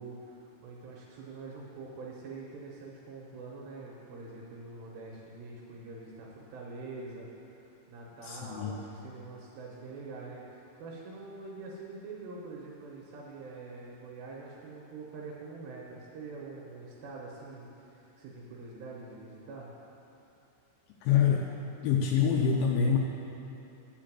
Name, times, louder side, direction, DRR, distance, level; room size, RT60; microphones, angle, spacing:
voice 1, 0.0-19.7, right 3 dB, 75° right, -3 dB, 2.9 m, -45 dB
voice 2, 8.2-8.8 21.0-21.5 21.8-23.0, left 7 dB, 80° left, 0 dB, 3.0 m, -26 dB
10.5 x 5.1 x 7.5 m, 2.9 s
omnidirectional pair, 5.5 m